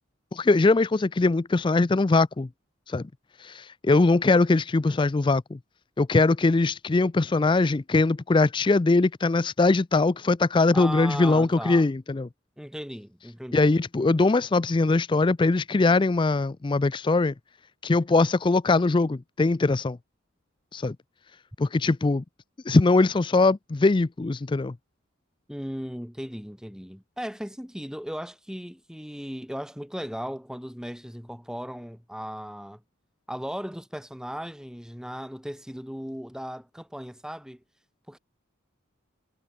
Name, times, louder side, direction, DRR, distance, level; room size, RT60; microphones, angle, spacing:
voice 1, 0.3-2.5 2.9-3.0 3.4-5.6 6.0-12.3 13.5-17.3 17.8-20.0 20.7-21.0 21.6-22.2 22.7-24.7, left 3 dB, 25° left, 0.4 m, -21 dB
voice 2, 10.7-11.9 12.6-13.7 25.5-32.8 33.3-37.6 38.1-38.2, equal, 5° right, 5.5 m, -37 dB
head